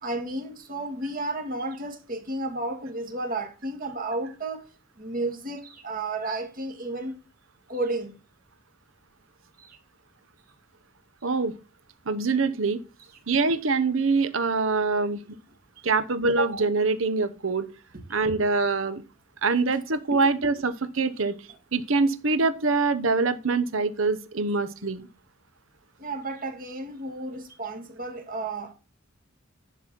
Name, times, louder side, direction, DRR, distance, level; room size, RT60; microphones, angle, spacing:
voice 1, 0.0-4.7 5.0-7.1 7.7-8.2 9.6-9.8 20.1-20.3 26.0-28.7, right 2 dB, 45° right, 1.9 m, -32 dB
voice 2, 11.2-11.5 12.1-12.8 13.3-15.2 15.8-17.7 18.1-19.0 19.4-21.4 21.7-25.1, right 4 dB, 75° right, 0.9 m, -24 dB
11.0 x 4.2 x 6.0 m
head